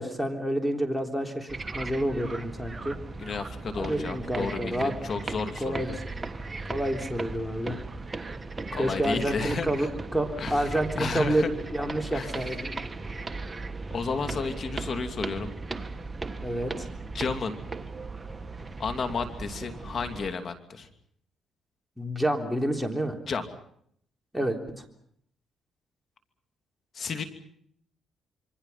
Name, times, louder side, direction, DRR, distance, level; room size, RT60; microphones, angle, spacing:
voice 1, 0.0-3.0 3.8-4.9 5.6-5.9 6.7-7.8 8.8-9.9 10.1-12.9 16.4-16.9 22.0-23.2 24.3-24.8, right 1 dB, 5° left, 5 dB, 3.6 m, -29 dB
sound 1, 1.5-20.3, right 3 dB, 25° right, 1.4 m, -37 dB
voice 2, 3.2-6.0 8.7-9.9 10.4-11.5 12.1-12.4 13.9-15.5 17.1-17.6 18.8-20.9 23.3-23.4 26.9-27.2, left 4 dB, 50° left, 8 dB, 2.7 m, -32 dB
27.0 x 24.0 x 5.8 m, 0.67 s
cardioid pair, 90°, 0 cm